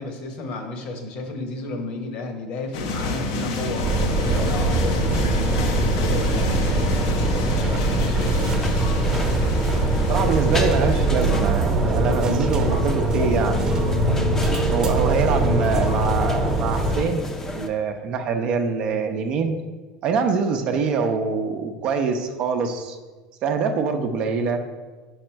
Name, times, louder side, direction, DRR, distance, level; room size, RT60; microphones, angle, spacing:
voice 1, 0.0-8.7, left 2 dB, 55° left, 5 dB, 1.0 m, -33 dB
sound 1, 2.7-11.4, left 2 dB, 75° left, 0.7 m, -28 dB
sound 2, 3.8-17.0, right 2 dB, 30° right, 0.9 m, -22 dB
sound 3, 8.0-17.7, left 1 dB, 20° left, 0.6 m, -33 dB
voice 2, 9.7-13.7 14.7-17.2 17.5-19.6 20.0-23.0 23.4-24.6, right 5 dB, 50° right, 5 dB, 0.6 m, -24 dB
5.2 x 4.8 x 4.4 m, 1.3 s
supercardioid pair, 125°, 2 cm